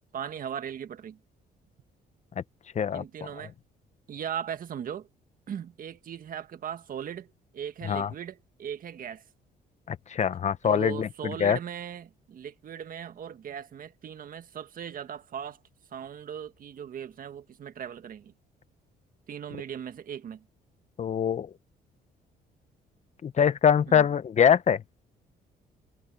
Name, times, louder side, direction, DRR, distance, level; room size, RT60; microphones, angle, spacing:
voice 1, 0.1-1.2 2.9-3.5 4.1-5.1 5.5-7.3 7.5-9.2 10.6-15.6 15.9-18.3 19.3-20.4 23.9-24.1, right 8 dB, 55° right, 1.6 m, -38 dB
voice 2, 9.9-11.6 21.0-21.5 23.2-24.8, left 8 dB, 45° left, 0.9 m, -23 dB
cardioid pair, 105°, 17 cm